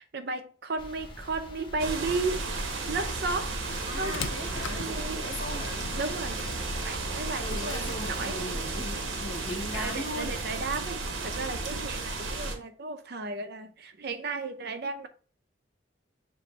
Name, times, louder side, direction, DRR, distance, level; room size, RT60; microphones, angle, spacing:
voice 1, 0.0-2.4 2.9-3.6 4.0-4.1 4.7-5.2 6.0-6.4 6.8-8.4 9.8-15.1, right 3 dB, 55° right, 0.6 m, -34 dB
sound 1, 0.8-8.3, left 1 dB, 25° left, 0.7 m, -45 dB
sound 2, 1.8-12.6, right 3 dB, 80° right, 0.9 m, -33 dB
sound 3, 3.6-10.5, left 6 dB, 85° left, 0.5 m, -44 dB
voice 2, 3.8-5.9 7.4-10.4, left 1 dB, 65° left, 1.1 m, -38 dB
6.8 x 2.6 x 3.1 m
head